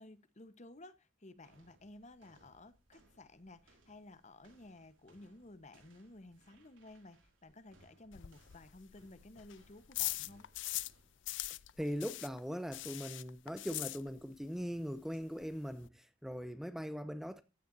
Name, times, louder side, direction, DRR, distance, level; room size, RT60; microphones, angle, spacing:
voice 1, 0.0-10.5, left 2 dB, 35° left, 1.1 m, -55 dB
sound 1, 1.4-11.3, right 1 dB, 80° right, 5.4 m, -68 dB
sound 2, 8.1-11.0 11.2-14.5 14.7-14.8 15.1-15.2 15.4-15.9, left 17 dB, 65° left, 0.5 m, -41 dB
voice 2, 11.8-17.4, equal, ahead, 0.7 m, -40 dB
15.0 x 10.0 x 2.7 m
head